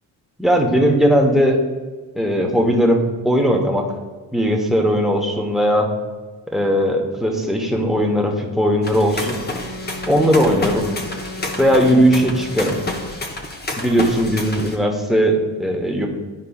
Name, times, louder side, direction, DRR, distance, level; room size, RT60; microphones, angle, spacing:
voice 1, 0.4-1.6 2.1-3.9 4.3-5.9 6.5-9.4 10.0-10.8 11.6-12.8 13.7-16.1, equal, ahead, 0 dB, 1.0 m, -18 dB
sound 1, 8.8-14.8, left 2 dB, 25° left, 0.8 m, -29 dB
Wind instrument woodwind instrument, 9.2-13.4, left 1 dB, 90° left, 1.0 m, -35 dB
11.5 x 4.7 x 2.3 m, 1.4 s
cardioid pair, 95°, 42 cm